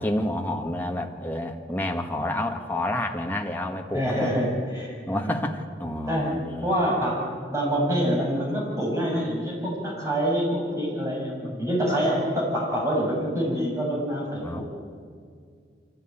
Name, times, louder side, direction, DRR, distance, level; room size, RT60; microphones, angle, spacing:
voice 1, 0.0-4.3 5.1-6.8 14.4-14.6, left 1 dB, 10° left, 2 dB, 1.5 m, -29 dB
voice 2, 3.9-5.4 6.1-6.4 6.6-14.6, equal, 15° right, -3 dB, 6.3 m, -26 dB
24.0 x 16.0 x 9.1 m, 2.1 s
head